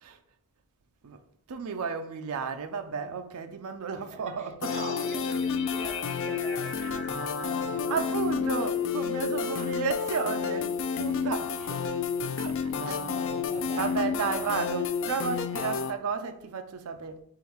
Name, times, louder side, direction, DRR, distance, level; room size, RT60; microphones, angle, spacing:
voice 1, 1.5-4.9 6.8-7.2 7.9-11.6 12.4-13.0 13.5-17.2, right 5 dB, 80° right, 0.5 m, -33 dB
voice 2, 3.9-7.8 9.4-9.8 11.6-12.0 12.7-14.5 15.2-15.7, right 3 dB, 30° right, 0.5 m, -44 dB
sound 1, 4.6-15.9, left 6 dB, 60° left, 0.4 m, -30 dB
3.7 x 3.1 x 4.5 m
head